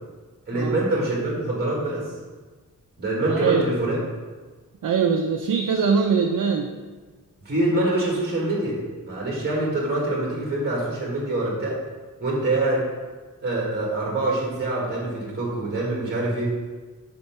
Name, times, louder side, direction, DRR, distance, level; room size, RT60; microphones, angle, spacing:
voice 1, 0.5-2.1 3.0-4.0 7.4-8.8 9.0-11.8 12.2-12.9 13.4-16.5, right 2 dB, 30° right, -4 dB, 1.6 m, -25 dB
voice 2, 3.3-3.6 4.8-6.7, right 6 dB, 70° right, 2 dB, 0.5 m, -22 dB
5.5 x 4.6 x 5.7 m, 1.4 s
wide cardioid pair, 165°, 34 cm